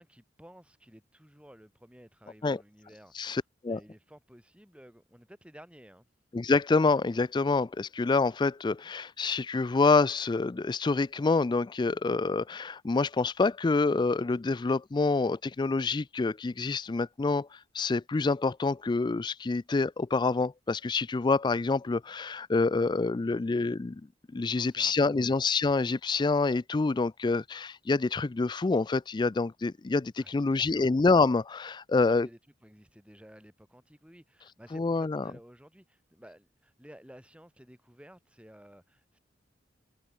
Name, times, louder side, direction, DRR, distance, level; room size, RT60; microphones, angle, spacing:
voice 1, 0.0-3.4 3.7-6.1 24.5-25.3 30.2-30.9 32.0-39.2, equal, 5° right, 5.1 m, -54 dB
voice 2, 3.2-3.8 6.3-24.0 24.3-32.3 34.7-35.2, left 3 dB, 25° left, 0.4 m, -27 dB
head